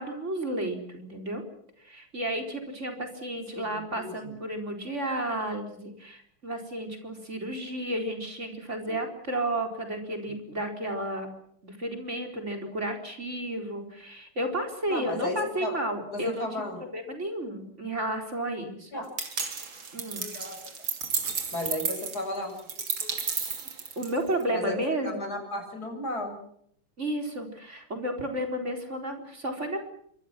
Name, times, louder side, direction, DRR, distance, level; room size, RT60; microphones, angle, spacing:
voice 1, 0.0-1.4 1.8-11.3 11.6-16.5 16.9-18.9 19.9-20.3 24.0-25.3 27.0-29.9, right 1 dB, 30° right, 4 dB, 4.6 m, -32 dB
voice 2, 3.5-4.3 8.9-9.0 14.9-15.8 16.1-16.8 18.9-19.1 20.2-20.7 21.5-22.5 23.0-23.1 24.5-24.8 25.0-26.4, left 1 dB, 45° left, 5 dB, 7.1 m, -34 dB
sound 1, 19.2-24.4, right 5 dB, 60° right, 3.6 m, -33 dB
26.5 x 24.5 x 6.0 m, 0.68 s
omnidirectional pair, 2.4 m